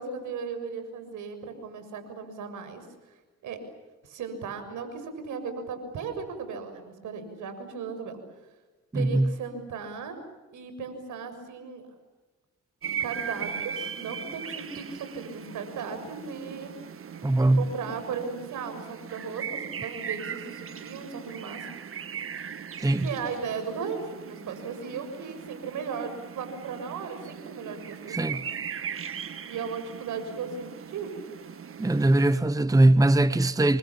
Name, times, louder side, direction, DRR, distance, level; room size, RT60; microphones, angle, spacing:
voice 1, 0.0-2.8 3.4-3.6 4.0-8.2 8.9-10.2 10.5-11.9 13.0-16.7 17.4-21.7 23.0-28.2 29.5-31.2, right 5 dB, 80° right, 6.9 m, -36 dB
voice 2, 8.9-9.3 17.2-17.7 22.8-23.1 28.1-28.4 31.8-33.8, right 2 dB, 10° right, 1.1 m, -21 dB
sound 1, 12.8-32.4, right 7 dB, 45° right, 1.7 m, -39 dB
30.0 x 24.0 x 7.3 m
cardioid pair, 90°, 30 cm